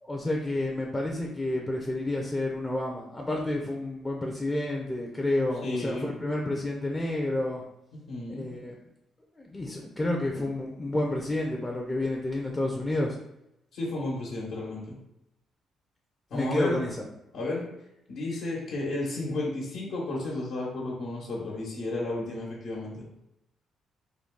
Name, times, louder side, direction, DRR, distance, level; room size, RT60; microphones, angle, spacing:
voice 1, 0.0-7.6 8.3-8.7 9.4-13.2 16.3-17.0, left 1 dB, 15° left, -1 dB, 0.5 m, -30 dB
voice 2, 5.6-6.1 8.1-8.5 13.7-15.0 16.3-16.8 17.3-17.6 18.1-23.0, left 2 dB, 80° left, -6 dB, 1.1 m, -32 dB
3.8 x 2.2 x 3.6 m, 0.85 s
cardioid pair, 90°, 0 cm